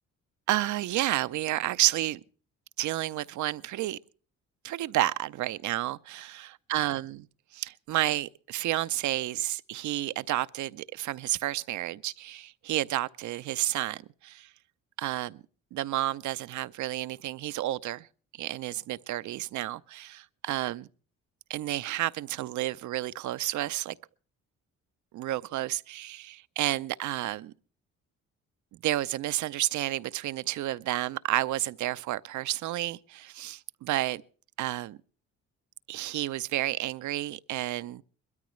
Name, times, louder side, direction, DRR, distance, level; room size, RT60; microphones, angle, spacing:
voice 1, 0.5-2.2 2.8-4.0 4.6-7.3 7.5-14.5 15.0-15.4 15.7-18.1 18.4-20.9 21.5-24.0 25.1-27.5 28.7-34.2 34.6-35.0 35.9-38.0, right 15 dB, 75° right, 0.6 m, -31 dB
21.5 x 13.5 x 3.1 m
cardioid pair, 90°, 30 cm